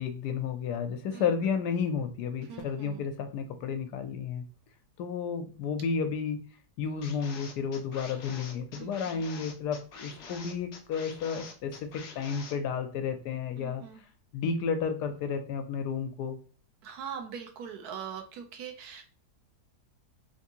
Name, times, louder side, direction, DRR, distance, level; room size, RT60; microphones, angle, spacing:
voice 1, 0.0-4.4 5.0-6.4 6.8-13.8 14.3-16.4, left 6 dB, 85° left, 7 dB, 1.2 m, -32 dB
voice 2, 2.5-3.0 8.8-9.2 13.6-14.0 16.8-19.0, right 7 dB, 75° right, 4 dB, 1.2 m, -42 dB
sound 1, 7.0-12.5, left 4 dB, 65° left, 0.7 m, -46 dB
3.5 x 2.6 x 2.7 m, 0.40 s
omnidirectional pair, 1.7 m